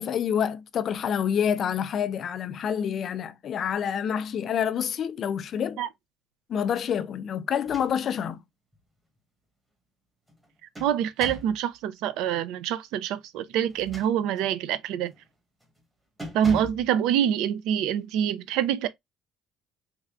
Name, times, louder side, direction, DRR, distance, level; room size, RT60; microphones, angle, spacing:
voice 1, 0.0-5.8 6.5-8.4, left 8 dB, 40° left, 0.3 m, -27 dB
sound 1, 7.5-8.3 8.7-8.8 10.3-11.6 13.6-14.6 15.0-15.3 15.6-15.8 16.2-16.9, left 1 dB, 5° right, 1.2 m, -41 dB
voice 2, 10.8-15.1 16.3-18.9, right 10 dB, 75° right, 0.5 m, -26 dB
3.5 x 3.3 x 2.3 m
cardioid pair, 160°, 0 cm